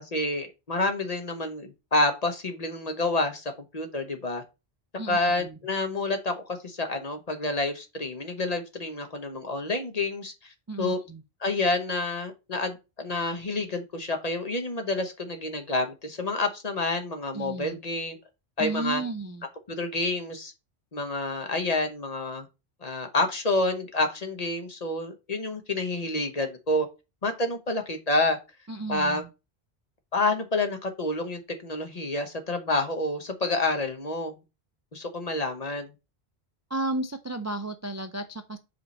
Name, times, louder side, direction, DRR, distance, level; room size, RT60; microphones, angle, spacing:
voice 1, 0.0-4.4 5.1-11.0 11.4-18.2 18.6-19.0 19.7-20.5 20.9-22.5 22.8-26.9 27.2-28.4 28.9-29.2 30.1-34.4 34.9-35.9, left 2 dB, 40° left, 1.0 m, -28 dB
voice 2, 5.0-5.6 10.7-11.2 17.3-17.8 18.6-19.4 28.7-29.3 36.7-38.6, right 2 dB, 25° right, 0.3 m, -33 dB
5.2 x 4.8 x 4.1 m
omnidirectional pair, 1.1 m